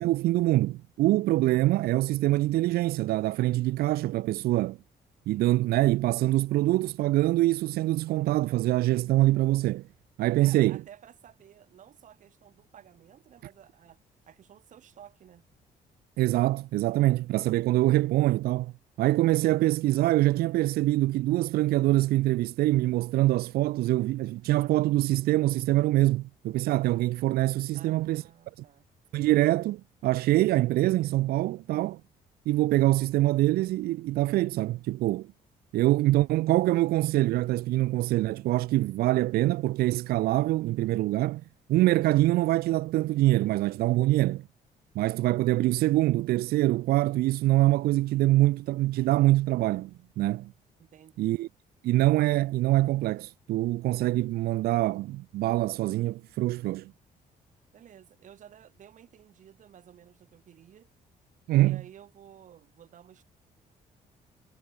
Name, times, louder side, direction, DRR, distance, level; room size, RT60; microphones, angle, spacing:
voice 1, 0.0-4.8 5.3-9.8 10.2-10.8 16.2-18.7 19.0-28.2 28.6-28.7 29.1-32.0 32.5-35.3 35.7-41.4 41.7-44.4 44.9-50.5 51.2-51.5 51.8-56.9 61.5-61.8, right 16 dB, 90° right, 0.9 m, -24 dB
voice 2, 10.4-14.0 14.3-15.5 27.7-28.8 50.8-51.4 57.7-60.9 61.6-63.2, right 10 dB, 55° right, 5.0 m, -53 dB
cardioid pair, 135°, 15 cm